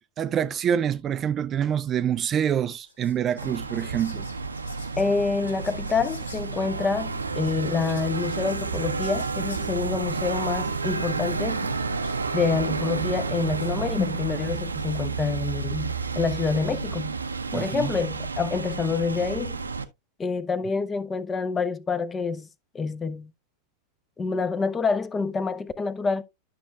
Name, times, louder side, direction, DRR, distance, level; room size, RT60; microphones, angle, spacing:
voice 1, 0.2-4.3 17.5-17.9, right 9 dB, 25° right, 0.4 m, -26 dB
Whispering, 2.6-14.0, left 2 dB, 75° left, 2.5 m, -51 dB
sound 1, 3.4-19.8, right 4 dB, 75° right, 0.6 m, -30 dB
voice 2, 5.0-11.7 12.3-17.2 17.5-19.6 20.2-22.5 22.7-23.3 24.2-26.2, left 4 dB, 20° left, 0.6 m, -27 dB
11.5 x 6.2 x 2.3 m
figure-of-eight pair, 90°, 0 cm